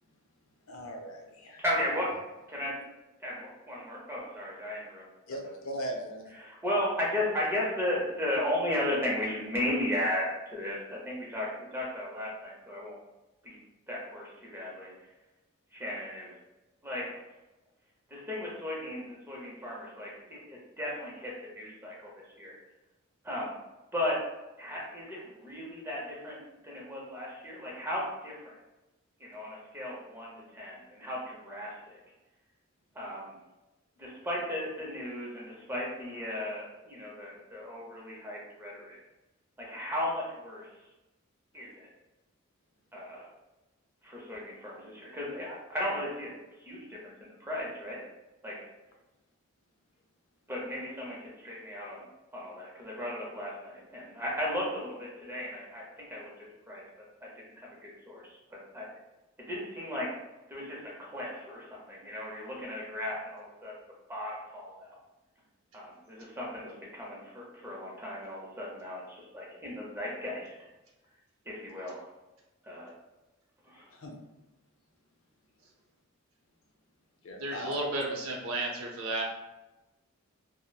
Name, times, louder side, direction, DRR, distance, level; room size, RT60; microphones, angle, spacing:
voice 1, 0.7-1.6 5.3-6.2 73.9-74.1 77.2-77.8, equal, 70° left, 1 dB, 0.5 m, -39 dB
voice 2, 1.6-2.1 2.5-2.7 3.2-5.0 6.4-10.2 10.5-13.0 13.4-13.6 13.9-14.9 15.7-16.3 16.8-17.2 18.1-22.1 22.4-22.6 23.2-23.6 23.9-24.2 24.6-26.4 26.6-28.6 29.2-32.0 32.9-33.3 34.0-39.0 39.6-40.7 41.5-41.9 42.9-43.3 44.0-46.3 46.7-48.0 48.4-48.5 50.5-52.0 52.3-56.3 56.7-56.8 57.2-57.3 57.6-58.9 59.4-60.1 60.5-63.7 64.1-65.0 65.7-70.5 71.5-72.0 72.6-72.9 73.7-73.9, left 1 dB, 10° right, -4 dB, 0.6 m, -35 dB
voice 3, 77.4-79.2, right 2 dB, 80° right, -1 dB, 0.6 m, -33 dB
2.8 x 2.0 x 2.3 m, 1.0 s
head